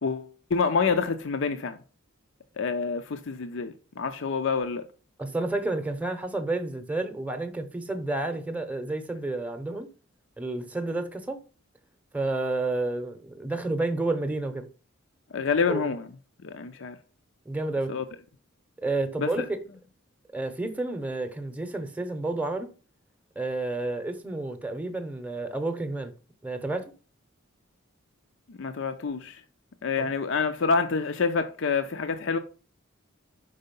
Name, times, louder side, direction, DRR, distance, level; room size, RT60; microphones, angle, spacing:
voice 1, 0.0-1.8 2.6-4.9 15.3-16.1 16.4-17.0 17.9-18.0 19.2-19.4 28.5-29.4 29.8-32.4, left 5 dB, 60° left, 0.5 m, -27 dB
voice 2, 5.2-9.9 10.4-11.4 12.1-14.7 15.7-15.9 17.4-17.9 18.8-19.6 20.3-22.7 23.4-26.1 26.4-26.9 30.0-30.1, right 2 dB, 5° right, 0.8 m, -30 dB
5.4 x 4.9 x 5.3 m
head